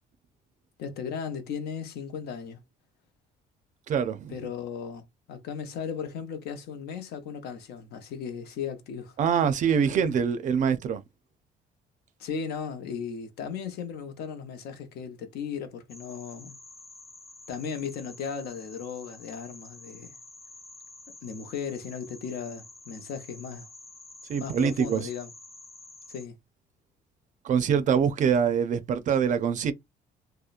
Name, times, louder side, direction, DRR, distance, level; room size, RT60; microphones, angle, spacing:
voice 1, 0.8-2.6 4.3-9.1 12.2-16.6 17.5-20.2 21.2-23.7 24.4-25.3 26.1-26.3, left 6 dB, 70° left, 0.7 m, -36 dB
voice 2, 3.9-4.4 9.2-11.0 24.3-25.1 27.4-29.7, right 7 dB, 50° right, 0.4 m, -24 dB
sound 1, 15.9-26.3, left 2 dB, 15° left, 0.6 m, -49 dB
2.8 x 2.1 x 2.4 m
cardioid pair, 110°, 17 cm